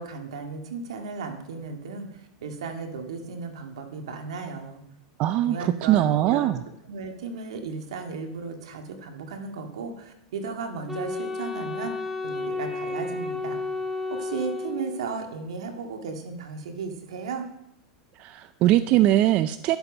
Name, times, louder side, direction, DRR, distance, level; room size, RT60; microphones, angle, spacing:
voice 1, 0.0-4.8 5.4-6.5 6.9-12.0 12.2-13.6 14.1-17.4, right 4 dB, 85° right, 4 dB, 2.0 m, -35 dB
voice 2, 5.2-6.6 18.2-19.8, right 13 dB, 45° right, 12 dB, 0.5 m, -21 dB
Wind instrument woodwind instrument, 10.9-15.3, left 3 dB, 5° right, 1.1 m, -32 dB
12.0 x 8.1 x 5.2 m, 0.79 s
supercardioid pair, 120°, 3 cm